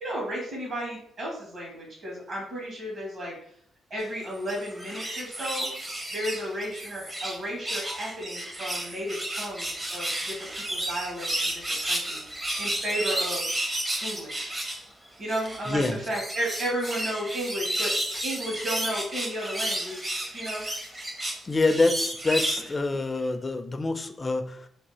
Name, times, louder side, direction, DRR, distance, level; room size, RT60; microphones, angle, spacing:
voice 1, 0.0-3.3 3.9-5.7 6.1-13.5 14.0-14.5 15.2-20.7, equal, 50° right, -3 dB, 1.4 m, -33 dB
sound 1, 4.3-7.4 7.6-14.8 15.3-22.7 23.2-23.3, right 1 dB, 20° right, 0.6 m, -32 dB
voice 2, 15.7-16.0 21.4-24.7, left 3 dB, 25° left, 8 dB, 0.3 m, -26 dB
2.8 x 2.3 x 3.9 m, 0.67 s
cardioid pair, 115°, 0 cm